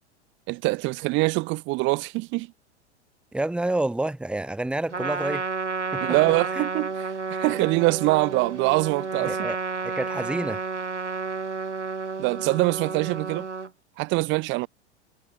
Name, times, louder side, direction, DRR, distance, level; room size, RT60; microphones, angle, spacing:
voice 1, 0.5-2.5 6.0-9.4 12.2-13.5 14.0-14.7, right 24 dB, 35° right, 0.7 m, -24 dB
voice 2, 3.3-5.5 5.9-6.2 6.5-6.7 9.2-9.6 9.8-10.6, right 2 dB, 5° right, 1.3 m, -28 dB
Trumpet, 4.9-13.7, right 4 dB, 90° right, 2.8 m, -31 dB
figure-of-eight pair, 100°, 35 cm